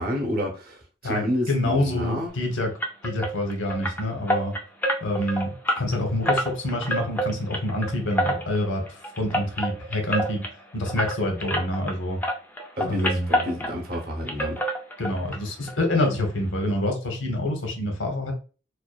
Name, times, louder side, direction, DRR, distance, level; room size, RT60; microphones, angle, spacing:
voice 1, 0.0-2.4 12.8-14.6, left 1 dB, 50° right, 0.7 m, -29 dB
voice 2, 1.0-2.7 3.0-4.5 5.0-10.4 10.7-12.2 12.8-13.3 15.0-18.3, left 1 dB, 85° left, 0.7 m, -27 dB
sound 1, 2.8-12.0 12.2-14.0 14.3-15.4 15.6-15.8 16.2-16.3 16.6-16.7, equal, 10° left, 0.3 m, -28 dB
2.6 x 2.2 x 2.2 m
head